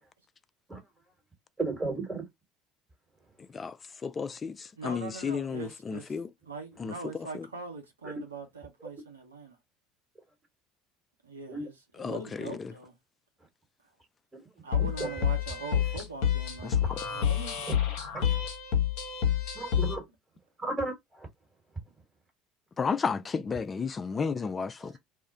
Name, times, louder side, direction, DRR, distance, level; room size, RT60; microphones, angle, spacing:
voice 1, 1.6-2.2 8.0-8.2 8.8-8.9 11.5-11.7 14.3-14.4 14.8-15.1 16.9-17.2 17.9-18.5 19.5-20.1 20.6-21.3 24.3-24.4 24.8-24.9, right 3 dB, 15° right, 1.3 m, -35 dB
voice 2, 4.0-6.3 6.8-6.9 7.3-7.5 12.0-12.7 16.6-16.8 22.8-25.0, left 5 dB, 30° left, 0.3 m, -32 dB
voice 3, 4.8-6.2 6.4-9.6 11.2-13.0 14.6-17.8, right 4 dB, 85° right, 0.7 m, -42 dB
sound 1, 14.7-20.0, left 9 dB, 65° left, 0.8 m, -28 dB
2.3 x 2.1 x 3.9 m
figure-of-eight pair, 65°, 0 cm